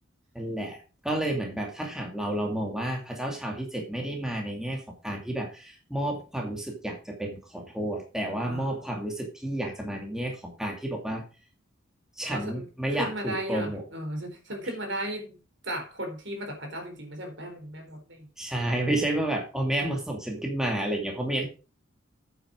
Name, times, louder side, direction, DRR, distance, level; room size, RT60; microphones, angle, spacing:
voice 1, 0.3-11.2 12.2-13.8 18.4-21.5, right 1 dB, 5° right, 2.4 m, -31 dB
voice 2, 8.4-8.8 12.3-18.3, right 1 dB, 60° right, 4.1 m, -36 dB
9.1 x 8.9 x 5.1 m
head